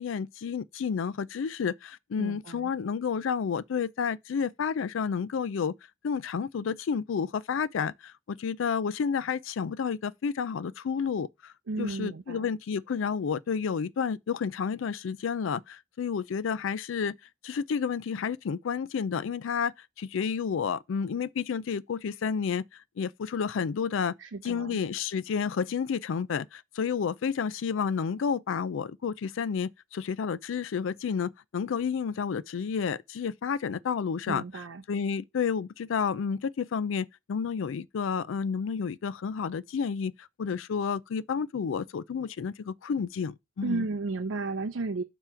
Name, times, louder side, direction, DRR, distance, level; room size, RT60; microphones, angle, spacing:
voice 1, 0.0-5.7 6.0-11.5 11.8-17.2 17.4-22.6 23.0-24.1 24.4-34.4 34.9-43.8, left 6 dB, 80° left, 0.4 m, -30 dB
voice 2, 2.2-2.7 11.7-12.5 24.2-24.8 34.3-34.8 43.6-45.0, right 3 dB, 75° right, 0.5 m, -33 dB
6.8 x 3.0 x 5.6 m
head